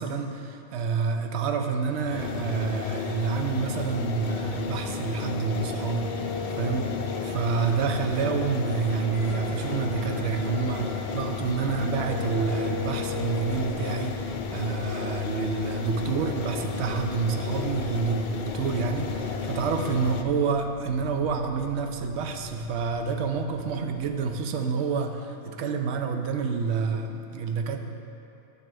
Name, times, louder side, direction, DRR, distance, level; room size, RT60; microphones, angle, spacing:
voice 1, 0.0-7.0 7.2-27.8, right 5 dB, 65° right, 5 dB, 0.8 m, -28 dB
sound 1, 2.0-20.2, left 5 dB, 65° left, 0.4 m, -33 dB
sound 2, 4.4-11.1 11.5-13.7, left 2 dB, 40° left, 1.1 m, -39 dB
sound 3, 9.1-24.4, left 2 dB, 80° left, 1.3 m, -44 dB
11.0 x 6.7 x 3.3 m, 2.7 s
omnidirectional pair, 1.3 m